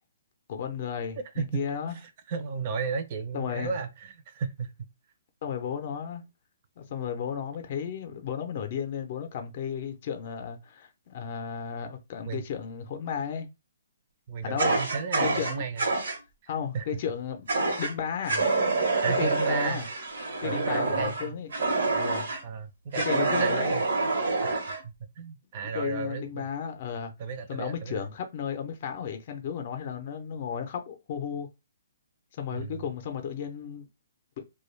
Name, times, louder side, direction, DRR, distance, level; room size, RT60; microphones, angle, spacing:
voice 1, 0.5-2.0 3.3-3.8 5.4-6.3 6.8-13.5 14.4-14.7 15.2-16.0 16.5-17.5 17.8-18.4 19.1-19.9 20.4-21.7 21.9-22.3 23.0-23.7 25.6-27.1 27.5-31.5 32.3-33.9, left 7 dB, 40° left, 0.5 m, -34 dB
voice 2, 1.4-1.7 2.3-4.9 12.3-12.4 14.3-15.9 16.7-16.9 19.0-19.8 20.4-21.4 22.4-23.9 24.4-26.5 27.2-28.0 32.5-32.8, right 5 dB, 35° right, 0.5 m, -34 dB
Fire, 14.6-16.2 17.5-17.9 18.3-22.4 22.9-24.8, right 3 dB, 80° right, 0.9 m, -27 dB
2.2 x 2.2 x 3.2 m
hypercardioid pair, 160°, 0 cm